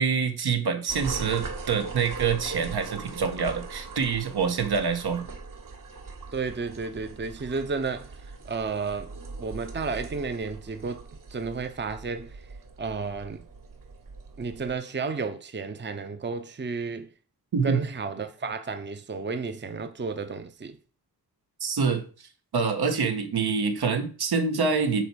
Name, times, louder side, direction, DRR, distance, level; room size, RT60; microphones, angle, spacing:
voice 1, 0.0-5.3 17.5-17.8 21.6-22.3 22.5-25.0, right 5 dB, 80° right, 1.6 m, -26 dB
sound 1, 0.9-14.7, right 4 dB, 55° right, 1.6 m, -41 dB
voice 2, 6.3-8.2 8.4-12.4 12.8-13.4 14.4-17.1 17.6-20.8, right 4 dB, 30° right, 0.8 m, -32 dB
9.2 x 4.6 x 6.2 m
wide cardioid pair, 125°, 38 cm